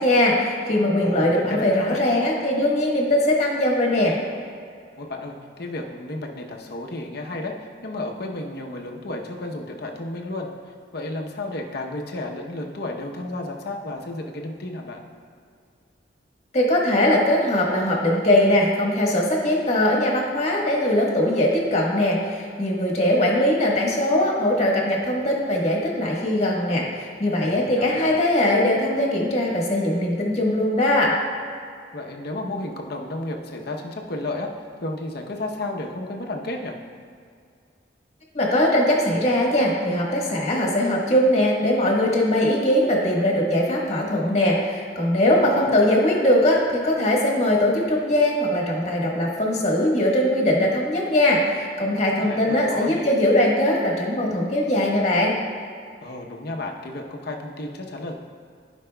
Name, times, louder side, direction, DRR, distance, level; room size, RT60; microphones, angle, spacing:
voice 1, 0.0-4.2 16.5-31.1 38.3-55.3, left 1 dB, 35° left, -2 dB, 1.4 m, -21 dB
voice 2, 1.0-2.0 5.0-15.0 27.3-28.1 31.9-34.5 34.8-36.8 45.3-45.8 52.2-53.1 56.0-58.1, left 2 dB, 60° left, 2 dB, 0.8 m, -32 dB
15.0 x 5.1 x 2.2 m, 2.3 s
head